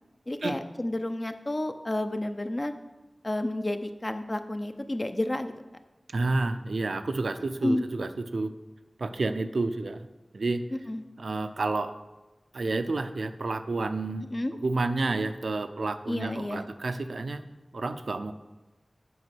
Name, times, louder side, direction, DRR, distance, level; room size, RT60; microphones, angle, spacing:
voice 1, 0.3-2.7 3.2-5.5 7.6-7.8 10.9-11.0 14.3-14.5 16.1-16.6, left 1 dB, 40° left, 8 dB, 0.7 m, -30 dB
voice 2, 6.1-8.5 9.0-10.1 10.3-10.6 11.2-12.0 12.5-17.4 17.7-18.3, right 3 dB, 85° right, 10 dB, 0.5 m, -30 dB
7.8 x 5.4 x 6.1 m, 1.1 s
wide cardioid pair, 45°, 0 cm